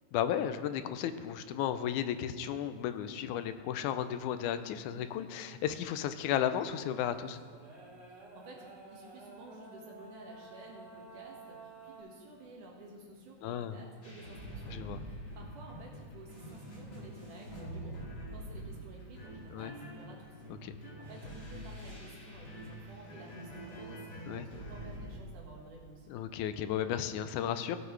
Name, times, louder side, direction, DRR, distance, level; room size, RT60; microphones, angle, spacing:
voice 1, 0.1-7.4 13.4-13.8 14.7-15.0 19.5-19.7 20.6-20.7 24.3-24.5 26.1-27.8, left 10 dB, 80° left, 10 dB, 2.0 m, -34 dB
sound 1, 6.6-12.0, right 3 dB, 60° right, 3.9 m, -52 dB
voice 2, 8.1-14.7 15.0-18.1 18.3-20.4 20.8-26.1, right 2 dB, 80° right, -1 dB, 3.3 m, -53 dB
sound 2, 14.0-25.2, right 1 dB, 35° left, 2.5 m, -45 dB
16.5 x 8.0 x 3.2 m, 2.1 s
omnidirectional pair, 3.6 m